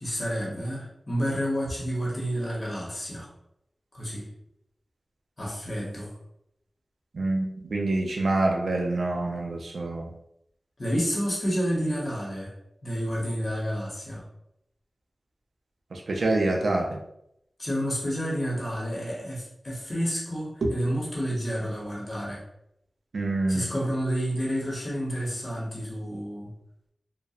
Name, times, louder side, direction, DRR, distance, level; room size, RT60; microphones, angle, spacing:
voice 1, 0.0-3.3 3.9-4.3 5.4-6.1 10.8-12.5 12.8-14.2 17.6-22.4 23.5-26.5, equal, 40° left, -5 dB, 0.8 m, -30 dB
voice 2, 7.1-10.1 15.9-17.0 20.6-20.7 23.1-23.7, right 2 dB, 85° right, 1 dB, 0.4 m, -26 dB
2.7 x 2.0 x 2.3 m, 0.79 s
wide cardioid pair, 65°, 0 cm